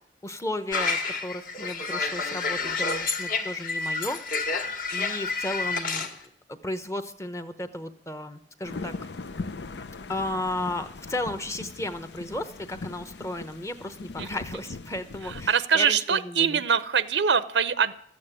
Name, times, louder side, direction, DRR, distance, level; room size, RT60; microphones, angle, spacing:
voice 1, 0.2-4.2 4.9-6.1 6.5-8.9 10.1-16.6, left 1 dB, 15° left, 10 dB, 0.9 m, -34 dB
sound 1, 0.7-6.1, left 4 dB, 55° left, 1.8 m, -29 dB
sound 2, 8.6-15.5, left 3 dB, 75° left, 0.7 m, -40 dB
voice 2, 15.5-17.9, right 7 dB, 85° right, 14 dB, 0.7 m, -23 dB
13.5 x 8.7 x 9.9 m, 0.65 s
head